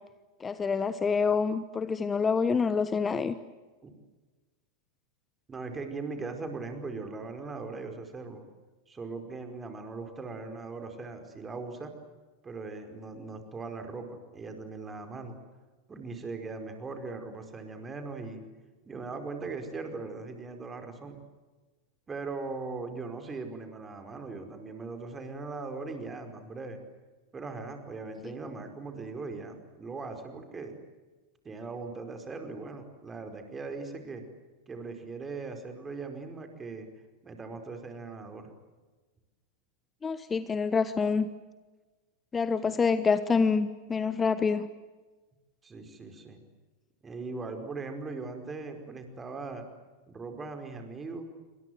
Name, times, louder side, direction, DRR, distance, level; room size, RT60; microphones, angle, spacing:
voice 1, 0.4-3.3 40.0-41.3 42.3-44.7, left 5 dB, 15° left, 14 dB, 1.1 m, -27 dB
voice 2, 5.5-8.4 8.9-11.9 12.4-15.3 15.9-18.4 18.8-21.2 22.1-26.8 27.3-30.7 31.4-34.2 34.7-36.9 37.2-38.5 42.6-42.7 45.6-46.4 47.0-49.6 50.1-51.3, right 3 dB, 15° right, 6 dB, 5.0 m, -39 dB
28.5 x 25.0 x 8.0 m, 1.2 s
figure-of-eight pair, 90°, 0 cm